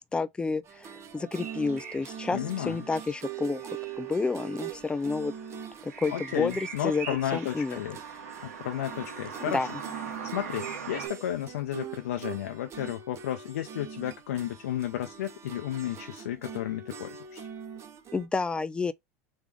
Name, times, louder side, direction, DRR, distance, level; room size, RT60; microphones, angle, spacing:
voice 1, 0.1-0.6 1.1-2.4 2.7-3.6 4.0-5.3 6.0-7.1 7.3-7.8 9.5-9.7 18.1-18.9, left 4 dB, 15° left, 0.4 m, -29 dB
sound 1, 0.6-18.3, right 8 dB, 40° right, 0.9 m, -43 dB
sound 2, 1.4-11.1, right 6 dB, 85° right, 1.3 m, -43 dB
voice 2, 2.3-2.9 6.1-8.0 8.4-9.7 10.1-17.5, left 11 dB, 80° left, 0.6 m, -33 dB
3.6 x 3.2 x 3.4 m
hypercardioid pair, 90°, 8 cm